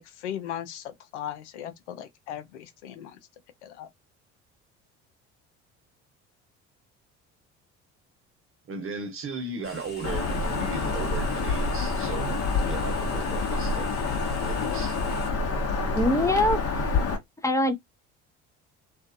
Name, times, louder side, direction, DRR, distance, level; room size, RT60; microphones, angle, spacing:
voice 1, 0.0-3.2 3.6-3.9, left 10 dB, 90° left, 0.5 m, -37 dB
voice 2, 8.7-12.4 12.6-15.0, right 4 dB, 40° right, 1.1 m, -36 dB
sound 1, 9.6-15.3, left 4 dB, 30° left, 1.3 m, -44 dB
Bird vocalization bird call bird song, 10.0-17.2, left 3 dB, 45° left, 1.0 m, -27 dB
voice 3, 15.9-17.0 17.4-17.8, left 1 dB, 10° left, 0.6 m, -24 dB
2.5 x 2.3 x 2.5 m
hypercardioid pair, 65°, 34 cm